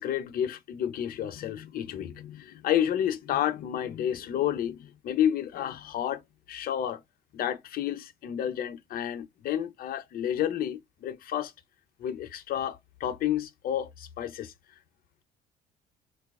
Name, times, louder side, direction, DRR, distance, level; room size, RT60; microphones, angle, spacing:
voice 1, 0.0-7.0 7.3-11.5 12.0-14.5, left 10 dB, 60° left, 0.6 m, -30 dB
2.5 x 2.3 x 3.6 m
cardioid pair, 110°, 17 cm